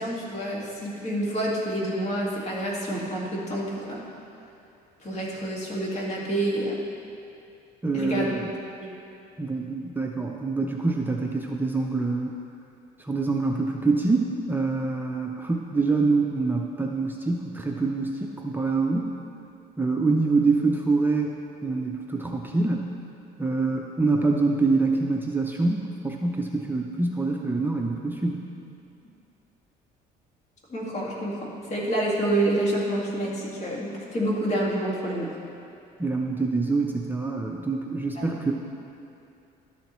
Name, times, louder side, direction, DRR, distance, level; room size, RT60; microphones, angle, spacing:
voice 1, 0.0-4.0 5.0-6.7 7.9-8.3 30.7-35.3 38.2-38.4, right 1 dB, 40° left, -4 dB, 2.0 m, -28 dB
voice 2, 7.8-8.5 9.4-12.4 13.0-19.2 19.8-22.9 23.4-28.4 36.0-38.5, right 3 dB, 10° right, 0 dB, 0.5 m, -25 dB
12.5 x 7.1 x 3.1 m, 2.6 s
cardioid pair, 110°, 17 cm